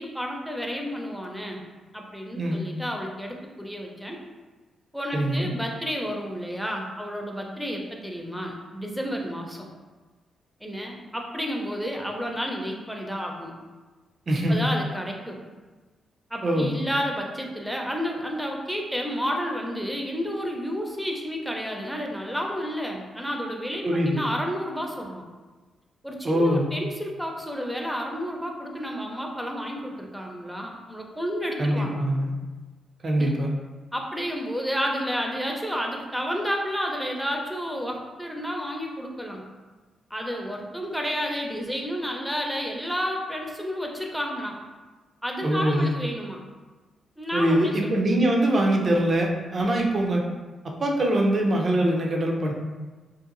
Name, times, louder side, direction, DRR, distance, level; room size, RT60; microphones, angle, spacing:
voice 1, 0.0-1.6 1.9-4.2 4.9-9.7 10.6-13.5 14.5-15.4 16.3-25.2 26.0-32.0 33.2-33.3 33.9-39.4 40.1-44.6 45.2-46.4 47.2-47.7, equal, ahead, 1 dB, 0.6 m, -31 dB
voice 2, 5.1-5.5 14.3-14.6 16.4-16.8 23.8-24.2 26.2-26.7 31.6-32.3 33.0-33.5 45.4-45.9 47.3-50.3 50.6-52.5, right 1 dB, 50° right, 0 dB, 0.5 m, -23 dB
2.7 x 2.5 x 2.5 m, 1.3 s
hypercardioid pair, 45°, 0 cm